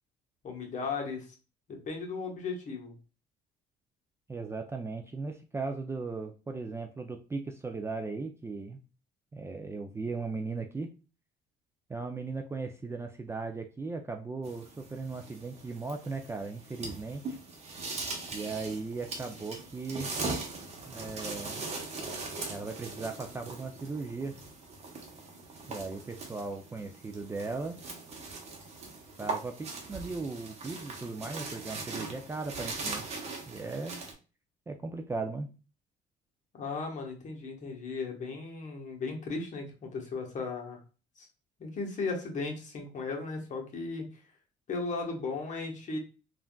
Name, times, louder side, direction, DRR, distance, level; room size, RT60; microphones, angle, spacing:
voice 1, 0.4-1.3 1.7-3.0 36.5-40.8 41.2-41.3 41.6-44.2 44.7-46.0, left 4 dB, 50° left, 1 dB, 1.1 m, -36 dB
voice 2, 4.3-8.8 9.3-10.9 11.9-17.4 18.3-20.1 20.9-21.7 22.5-24.3 25.7-27.8 29.2-33.1 33.5-34.0 34.7-35.5, right 3 dB, 15° right, 4 dB, 0.3 m, -37 dB
sound 1, 14.4-34.1, right 3 dB, 40° right, 0.9 m, -40 dB
3.4 x 2.5 x 2.2 m, 0.33 s
cardioid pair, 110°, 17 cm